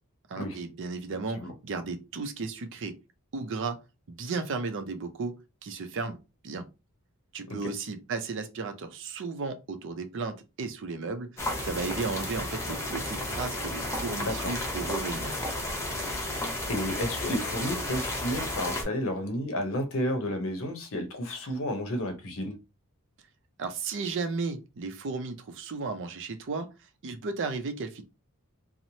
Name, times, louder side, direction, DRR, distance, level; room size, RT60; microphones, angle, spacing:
voice 1, 0.3-3.0 3.3-3.8 4.1-6.2 6.4-6.6 7.3-15.4 23.6-26.7 27.0-28.0, right 4 dB, 60° right, 0.5 m, -34 dB
sound 1, 11.4-18.8, left 1 dB, 15° left, 0.7 m, -33 dB
voice 2, 14.2-14.5 16.7-22.6, left 1 dB, 65° left, 0.7 m, -31 dB
2.9 x 2.0 x 2.7 m
head